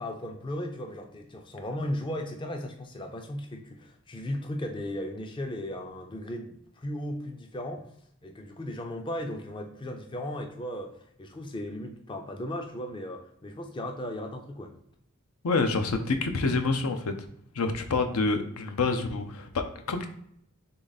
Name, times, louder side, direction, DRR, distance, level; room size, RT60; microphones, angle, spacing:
voice 1, 0.0-7.8 8.2-10.9 11.2-14.7, left 1 dB, 20° left, 4 dB, 0.4 m, -36 dB
voice 2, 15.4-17.0 17.6-20.1, left 3 dB, 80° left, 6 dB, 0.6 m, -27 dB
3.8 x 3.4 x 3.9 m, 0.70 s
head